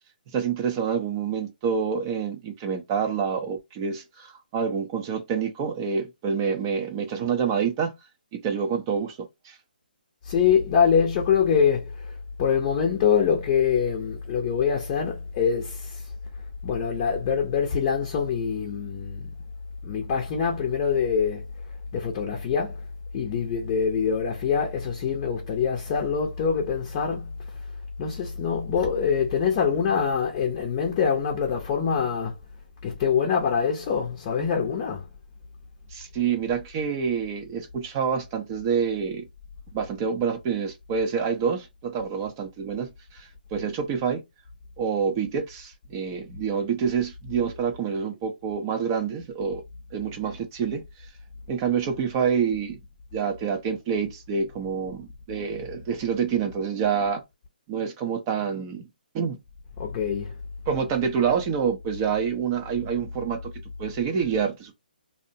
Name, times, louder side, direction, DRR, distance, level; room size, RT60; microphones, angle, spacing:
voice 1, 0.3-7.9 8.3-9.6 35.9-39.2 39.7-44.2 44.8-49.6 49.9-50.8 51.5-52.8 53.1-57.2 57.7-58.9 59.1-59.4 60.7-63.5 63.8-64.7, right 6 dB, 25° right, 0.5 m, -27 dB
voice 2, 10.2-16.1 16.6-19.3 19.8-21.4 21.9-22.8 23.1-27.3 28.0-32.3 32.8-35.0 59.8-60.3, left 7 dB, 25° left, 0.6 m, -24 dB
2.6 x 2.0 x 2.6 m
hypercardioid pair, 155°, 5 cm